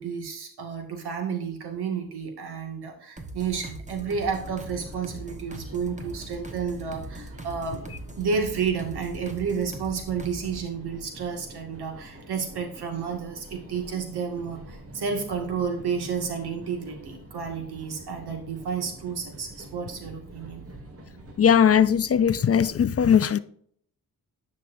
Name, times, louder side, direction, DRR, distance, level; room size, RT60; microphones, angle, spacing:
voice 1, 0.0-7.8 8.2-20.6, right 6 dB, 85° right, 2.0 m, -31 dB
sound 1, 3.2-10.7, right 1 dB, 20° right, 1.2 m, -41 dB
sound 2, 4.4-22.7, right 1 dB, 35° right, 1.8 m, -46 dB
voice 2, 21.4-23.4, left 8 dB, 40° left, 0.4 m, -19 dB
10.0 x 6.2 x 2.6 m
cardioid pair, 100°, 38 cm